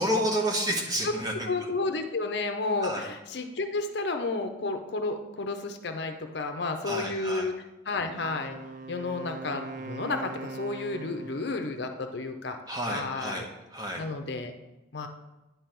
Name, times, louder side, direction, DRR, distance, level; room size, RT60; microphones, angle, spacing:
voice 1, 0.0-1.5 2.8-3.1 6.9-7.5 12.7-14.0, equal, 20° right, 1 dB, 0.9 m, -30 dB
voice 2, 1.5-7.5 7.9-8.6 8.9-12.6 12.9-13.5 14.0-14.5 14.9-15.1, left 3 dB, 60° left, 6 dB, 0.6 m, -31 dB
Wind instrument woodwind instrument, 8.0-11.8, right 3 dB, 40° right, 0.4 m, -41 dB
9.2 x 3.4 x 5.9 m, 1.0 s
head